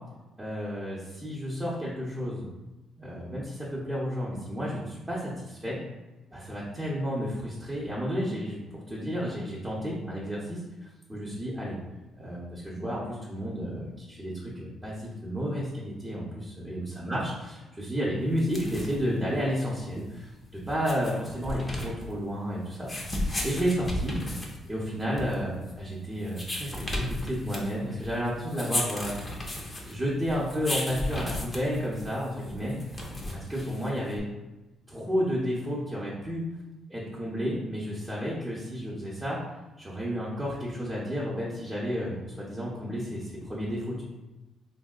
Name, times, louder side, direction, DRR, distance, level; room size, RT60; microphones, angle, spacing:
voice 1, 0.4-2.5 3.0-5.8 6.3-11.8 12.2-17.3 17.7-24.2 24.7-29.1 29.8-32.8 33.3-34.3 34.9-36.4 36.9-39.4 39.8-44.0, equal, 15° right, -7 dB, 0.7 m, -32 dB
sound 1, 18.3-34.2, left 1 dB, 25° left, 0.6 m, -35 dB
3.0 x 2.7 x 2.4 m, 1.1 s
cardioid pair, 90°, 0 cm